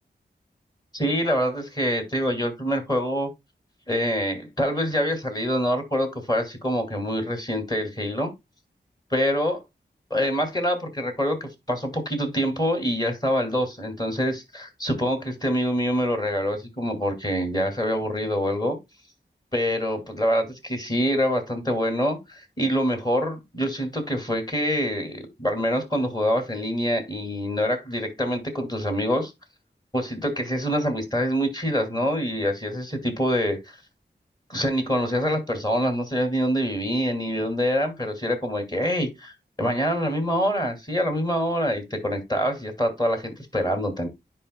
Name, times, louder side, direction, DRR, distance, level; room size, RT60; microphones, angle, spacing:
voice 1, 0.9-3.3 3.9-8.3 9.1-9.6 10.1-18.8 19.5-29.3 29.9-33.8 34.5-44.1, equal, 20° left, 2.6 m, -25 dB
10.0 x 5.3 x 2.2 m
wide cardioid pair, 80°, 18 cm